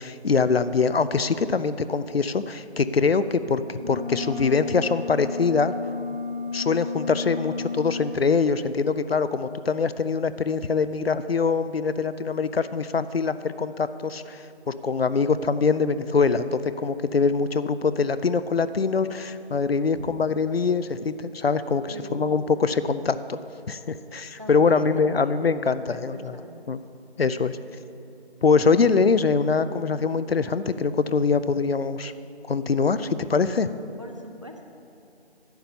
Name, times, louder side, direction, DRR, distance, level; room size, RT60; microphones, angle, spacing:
voice 1, 0.0-5.7 6.5-23.4 23.7-26.3 26.7-26.8 27.2-27.6 28.4-32.1 32.5-33.7, left 5 dB, 65° left, 13 dB, 0.5 m, -23 dB
sound 1, 3.7-8.1, left 5 dB, 15° right, 1.0 m, -33 dB
voice 2, 21.9-22.4 24.4-25.4 25.8-26.6 27.3-27.4 34.0-34.7, left 1 dB, 30° right, 4 dB, 0.6 m, -41 dB
10.5 x 6.7 x 7.2 m, 2.6 s
figure-of-eight pair, 165°, 33 cm